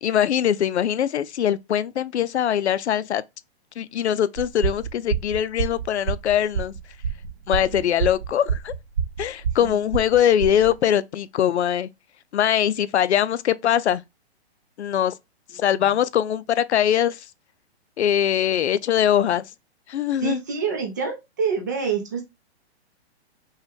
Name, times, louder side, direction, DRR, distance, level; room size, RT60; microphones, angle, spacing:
voice 1, 0.0-3.2 3.8-6.7 7.5-8.7 9.2-11.9 12.3-14.0 14.8-15.1 15.5-17.3 18.0-19.4 19.9-20.4, left 10 dB, 85° left, 0.6 m, -22 dB
sound 1, 4.4-10.7, right 7 dB, 45° right, 0.8 m, -27 dB
voice 2, 20.2-22.2, right 6 dB, 15° right, 0.5 m, -27 dB
5.4 x 2.3 x 3.5 m
hypercardioid pair, 170°, 33 cm